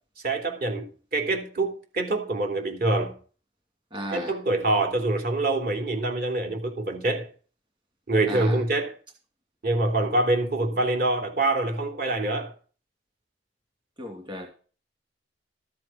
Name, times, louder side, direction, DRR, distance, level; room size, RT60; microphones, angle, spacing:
voice 1, 0.2-3.1 4.1-7.3 8.1-8.9 9.6-12.5, right 2 dB, 50° right, 3.1 m, -25 dB
voice 2, 3.9-4.4 8.3-8.6 14.0-14.5, right 1 dB, 25° right, 2.7 m, -35 dB
14.0 x 7.6 x 6.1 m
head